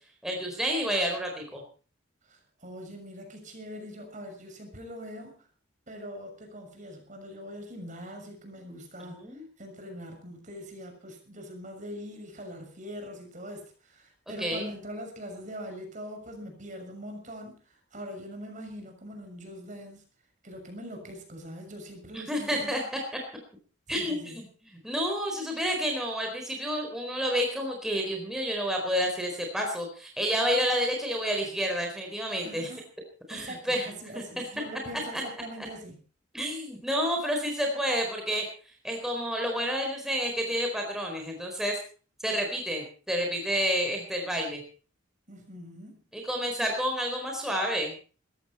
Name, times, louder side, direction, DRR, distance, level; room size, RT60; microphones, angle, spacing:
voice 1, 0.2-1.6 9.1-9.4 14.4-14.7 22.1-23.0 23.9-32.7 33.3-34.2 35.1-35.2 35.6-35.7 36.3-38.4 38.8-41.8 42.2-44.6 46.1-48.0, equal, ahead, 2 dB, 4.3 m, -30 dB
voice 2, 2.3-5.3 5.9-9.3 9.6-20.0 20.4-22.7 23.9-24.4 32.4-32.8 33.3-33.7 34.0-36.0 45.3-46.0, equal, 40° right, 4 dB, 6.6 m, -42 dB
20.5 x 15.0 x 4.3 m, 0.39 s
head